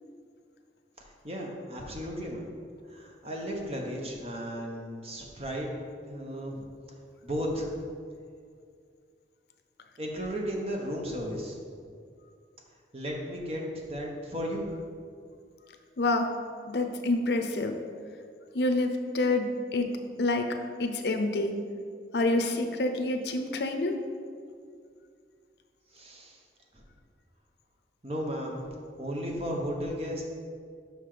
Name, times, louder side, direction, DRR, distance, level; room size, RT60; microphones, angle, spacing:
voice 1, 1.0-2.5 2.9-5.7 6.1-6.7 7.2-7.8 10.0-11.8 12.9-14.8 25.9-26.4 26.7-26.8 28.0-28.7 29.0-30.2, equal, 35° right, 0 dB, 1.0 m, -35 dB
voice 2, 16.0-16.4 16.7-17.7 18.5-19.9 20.2-21.6 22.1-24.0, left 2 dB, 70° left, 5 dB, 0.6 m, -27 dB
5.8 x 5.7 x 5.0 m, 2.2 s
head